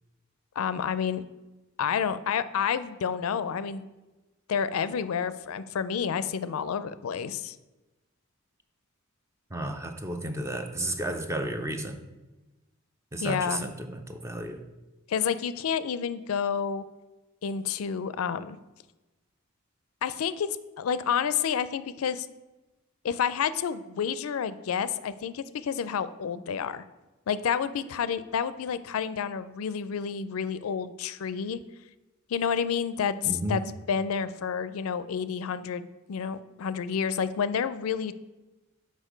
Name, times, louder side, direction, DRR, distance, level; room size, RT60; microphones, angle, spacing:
voice 1, 0.6-1.2 1.8-3.9 4.5-7.6 13.2-13.6 15.1-16.8 17.4-18.6 20.0-22.3 23.0-26.8 27.3-31.6 32.3-33.6 33.9-38.1, left 7 dB, 85° left, 14 dB, 0.4 m, -29 dB
voice 2, 9.5-12.0 13.1-14.6 33.2-33.6, right 1 dB, 15° right, 7 dB, 0.5 m, -32 dB
6.4 x 5.1 x 5.0 m, 1.1 s
head